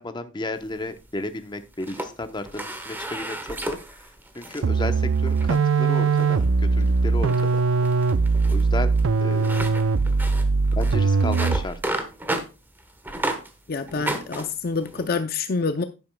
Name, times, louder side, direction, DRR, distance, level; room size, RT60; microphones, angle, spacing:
voice 1, 0.0-3.4 3.7-4.1 4.3-7.6 8.5-9.0 9.2-9.6 10.7-11.8, left 2 dB, 20° left, 0.8 m, -33 dB
sound 1, 0.6-1.3 1.7-4.7 5.1-5.6 6.1-6.5 6.8-7.0 7.3-13.5 13.9-15.1, right 1 dB, 10° right, 1.1 m, -33 dB
sound 2, 4.6-11.8, right 4 dB, 75° right, 0.5 m, -21 dB
voice 2, 13.7-15.8, left 4 dB, 45° left, 0.5 m, -27 dB
11.0 x 10.5 x 2.2 m
head